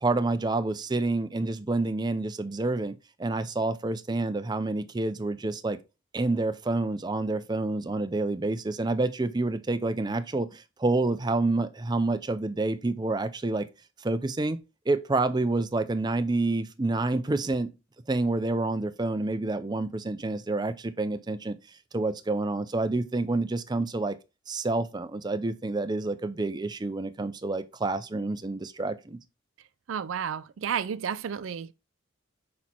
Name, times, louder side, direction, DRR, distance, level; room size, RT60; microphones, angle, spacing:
voice 1, 0.0-2.9 3.2-5.8 6.1-13.7 14.0-14.6 14.9-17.7 18.1-21.6 21.9-24.2 24.5-29.2, right 2 dB, 20° right, 0.5 m, -28 dB
voice 2, 29.9-31.7, right 7 dB, 80° right, 0.4 m, -31 dB
6.2 x 4.3 x 4.3 m
head